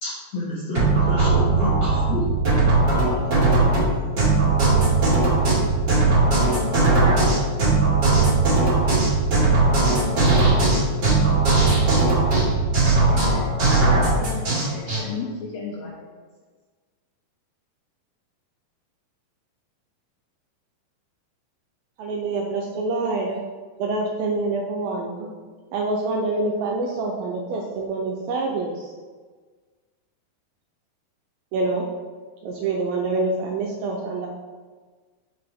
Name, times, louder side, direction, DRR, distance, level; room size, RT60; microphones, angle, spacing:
voice 1, 0.0-2.2, left 2 dB, 70° left, -7 dB, 1.6 m, -29 dB
sound 1, 0.7-15.0, right 3 dB, 35° right, 2.0 m, -18 dB
voice 2, 12.3-13.5 14.5-16.1, left 5 dB, 90° left, -2 dB, 2.0 m, -36 dB
voice 3, 22.0-23.4 23.8-25.4 25.7-28.9 31.5-31.9 32.4-34.3, right 3 dB, 80° right, 0 dB, 2.1 m, -26 dB
6.8 x 6.0 x 3.4 m, 1.4 s
omnidirectional pair, 4.7 m